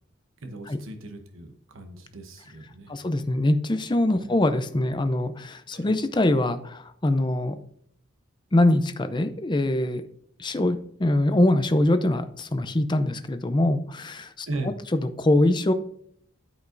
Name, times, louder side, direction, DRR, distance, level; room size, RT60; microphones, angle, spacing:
voice 1, 0.4-3.0 4.2-4.3 5.7-5.9 14.5-14.8, right 2 dB, 80° right, 6 dB, 1.0 m, -37 dB
voice 2, 2.9-7.6 8.5-10.0 10.4-14.5 14.9-15.7, left 1 dB, 25° left, 10 dB, 0.6 m, -23 dB
12.5 x 5.2 x 2.6 m, 0.65 s
head